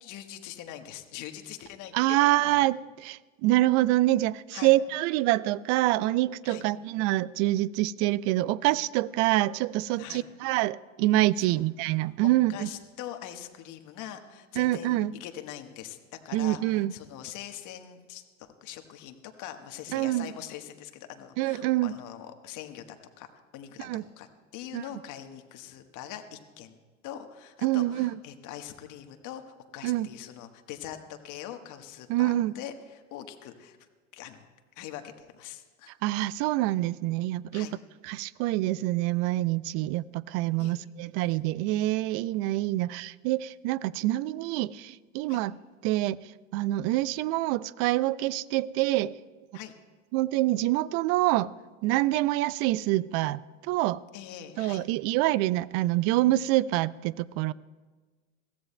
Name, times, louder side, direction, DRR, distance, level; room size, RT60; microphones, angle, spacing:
voice 1, 0.0-2.2 2.4-2.7 4.5-4.7 6.4-6.7 10.0-10.2 11.4-11.6 12.5-26.8 27.0-33.8 34.1-34.5 34.8-35.9 37.5-37.7 40.6-40.8 45.3-45.4 49.5-49.7 54.1-54.9, left 11 dB, 50° left, 1.4 m, -43 dB
voice 2, 1.9-12.7 14.6-15.1 16.3-16.9 19.9-20.3 21.4-22.0 23.8-24.0 24.7-24.8 27.6-28.1 29.8-30.1 32.1-32.5 36.0-37.7 38.0-45.6 45.8-46.2 46.5-49.2 50.1-51.5 51.8-54.0 54.6-57.5, right 16 dB, 50° right, 0.4 m, -26 dB
22.0 x 15.5 x 2.2 m
hypercardioid pair, 80°, 39 cm